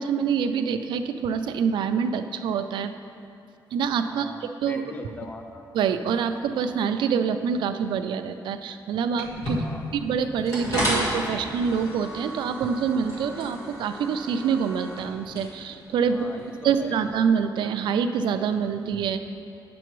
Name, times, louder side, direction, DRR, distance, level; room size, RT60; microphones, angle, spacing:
voice 1, 0.0-2.9 3.7-4.8 5.7-9.7 9.9-16.3 16.6-19.2, right 6 dB, 80° right, 9 dB, 0.4 m, -26 dB
voice 2, 4.1-5.7 9.5-9.9 16.1-17.0, left 2 dB, 20° left, 5 dB, 0.4 m, -40 dB
sound 1, 9.2-17.1, equal, 45° left, 1.8 m, -33 dB
9.0 x 6.9 x 3.1 m, 2.6 s
cardioid pair, 140°, 8 cm